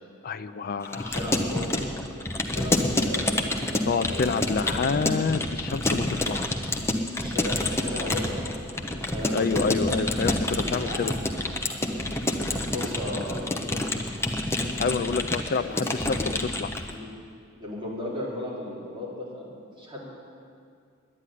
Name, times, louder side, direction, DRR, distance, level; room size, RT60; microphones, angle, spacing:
voice 1, 0.2-1.1 3.9-6.5 9.3-11.1 14.8-16.7, left 4 dB, 45° left, 10 dB, 0.4 m, -28 dB
Keyboard (musical) / Computer keyboard, 0.8-16.9, left 1 dB, 10° left, 0.8 m, -28 dB
voice 2, 1.0-1.9 2.5-3.8 4.1-4.9 5.5-5.7 7.2-9.8 10.4-11.1 12.5-13.9 15.7-15.9 16.9-17.1 17.6-20.0, left 1 dB, 20° right, -7 dB, 3.8 m, -36 dB
10.5 x 9.9 x 9.9 m, 2.3 s
head